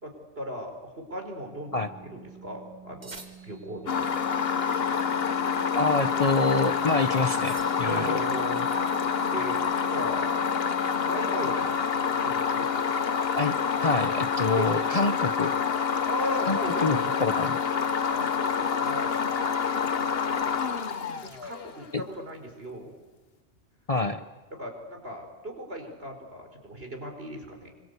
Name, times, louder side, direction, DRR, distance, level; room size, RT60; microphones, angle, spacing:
voice 1, 0.0-4.2 7.9-8.7 9.3-9.6 9.9-10.3 11.0-11.7 12.2-12.8 14.5-14.7 16.1-17.1 18.0-19.2 21.2-22.9 24.6-27.7, equal, 55° right, 3 dB, 5.0 m, -37 dB
Organ, 1.5-12.1, right 7 dB, 20° right, 2.9 m, -49 dB
sound 1, 3.0-3.9 7.3-8.2, right 2 dB, 35° right, 2.3 m, -47 dB
sound 2, 3.9-21.8, left 6 dB, 60° left, 1.3 m, -27 dB
voice 2, 5.7-8.2 13.4-15.5 16.5-17.6 21.9-22.0 23.9-24.2, left 3 dB, 35° left, 9 dB, 0.9 m, -26 dB
26.0 x 25.0 x 8.2 m, 1.3 s
omnidirectional pair, 1.2 m